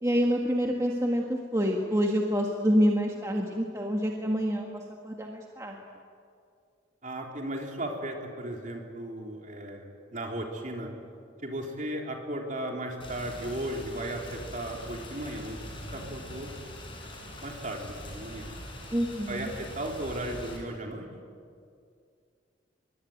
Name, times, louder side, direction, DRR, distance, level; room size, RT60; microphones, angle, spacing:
voice 1, 0.0-5.8 18.9-19.5, equal, 15° right, 1 dB, 1.6 m, -27 dB
voice 2, 7.0-10.9 11.4-15.6 15.9-16.5 17.4-18.5 19.3-21.1, right 1 dB, 40° right, 1 dB, 3.8 m, -36 dB
Rain, 13.0-20.6, left 1 dB, 25° left, 6.5 m, -43 dB
25.0 x 22.5 x 9.4 m, 2.3 s
head